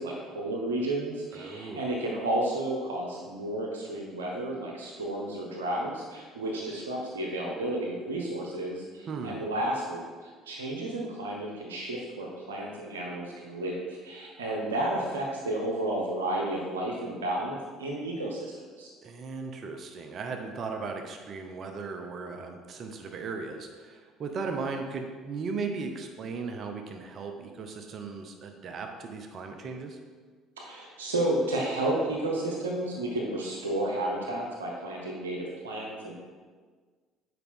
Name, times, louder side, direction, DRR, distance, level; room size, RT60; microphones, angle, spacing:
voice 1, 0.0-18.5 18.8-18.9 30.6-36.1, right 1 dB, 85° right, -1 dB, 0.9 m, -32 dB
voice 2, 1.3-1.8 9.1-9.5 19.0-30.0, right 4 dB, 50° right, 4 dB, 0.8 m, -37 dB
8.2 x 5.1 x 3.7 m, 1.5 s
hypercardioid pair, 55°, 0 cm